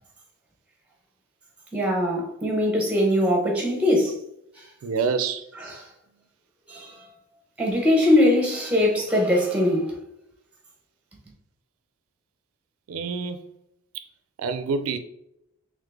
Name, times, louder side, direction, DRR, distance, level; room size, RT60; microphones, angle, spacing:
voice 1, 1.7-4.2 5.6-5.8 6.7-7.0 7.6-10.0, left 1 dB, 5° right, 0.9 m, -21 dB
voice 2, 4.8-5.4 12.9-13.4 14.4-15.0, right 5 dB, 75° right, 0.4 m, -26 dB
3.8 x 3.1 x 3.4 m
head